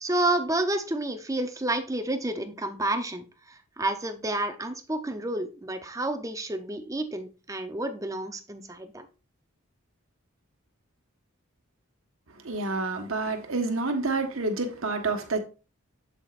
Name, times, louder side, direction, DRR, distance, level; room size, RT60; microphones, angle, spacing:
voice 1, 0.0-3.2 3.8-9.1, right 2 dB, 15° right, 0.7 m, -30 dB
voice 2, 12.4-15.4, right 3 dB, 70° right, 1.4 m, -28 dB
8.0 x 7.3 x 2.5 m
head